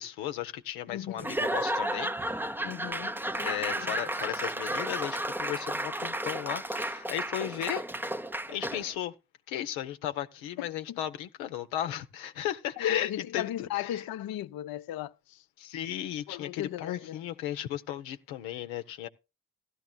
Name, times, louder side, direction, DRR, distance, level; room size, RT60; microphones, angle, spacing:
voice 1, 0.0-2.1 3.3-7.9 8.5-9.1 9.5-14.0 15.6-19.1, left 11 dB, 90° left, 0.7 m, -35 dB
voice 2, 0.9-1.3 2.6-3.2 3.8-3.9 10.6-11.0 12.8-15.4 16.3-17.2, left 11 dB, 50° left, 0.5 m, -36 dB
Laughter / Applause / Crowd, 1.2-8.9, right 1 dB, 5° right, 0.5 m, -33 dB
15.0 x 13.0 x 2.2 m
hypercardioid pair, 45°, 48 cm